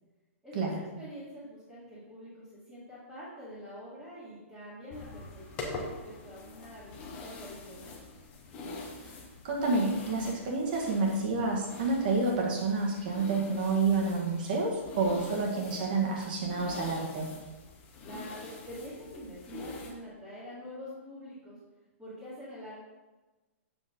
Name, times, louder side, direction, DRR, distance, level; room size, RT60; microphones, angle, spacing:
voice 1, 0.4-8.0 18.0-21.6 22.0-22.8, equal, 5° right, -13 dB, 2.1 m, -45 dB
sound 1, 4.9-19.9, left 3 dB, 15° left, 1.1 m, -45 dB
voice 2, 9.4-17.3, right 3 dB, 40° right, -1 dB, 1.9 m, -29 dB
9.0 x 7.4 x 3.8 m, 1.2 s
hypercardioid pair, 180°, 7 cm